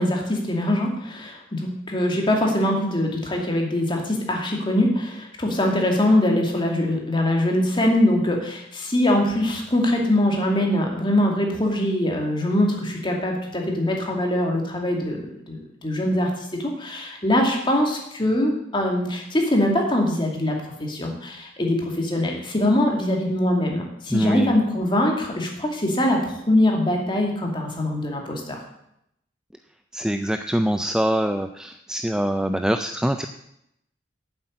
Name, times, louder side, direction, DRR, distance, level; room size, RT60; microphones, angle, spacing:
voice 1, 0.0-16.3 16.6-28.6, left 1 dB, 25° left, 1 dB, 2.4 m, -23 dB
voice 2, 24.1-24.5 29.9-33.3, equal, 5° right, 7 dB, 0.4 m, -24 dB
8.6 x 7.9 x 8.7 m, 0.78 s
head